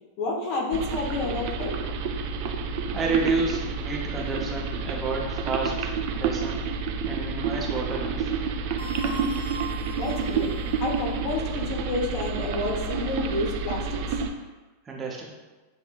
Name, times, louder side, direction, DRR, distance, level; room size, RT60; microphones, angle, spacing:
voice 1, 0.2-1.7 10.0-10.5 10.8-14.2, left 2 dB, 40° left, -1 dB, 1.1 m, -30 dB
sound 1, 0.7-14.3, right 5 dB, 45° right, 0.4 m, -29 dB
voice 2, 2.9-6.6 7.0-8.3 14.9-15.3, right 3 dB, 20° right, -2 dB, 0.8 m, -30 dB
sound 2, 8.8-11.1, right 2 dB, 70° left, 0.7 m, -40 dB
7.6 x 2.6 x 2.4 m, 1.2 s
figure-of-eight pair, 90°, 0 cm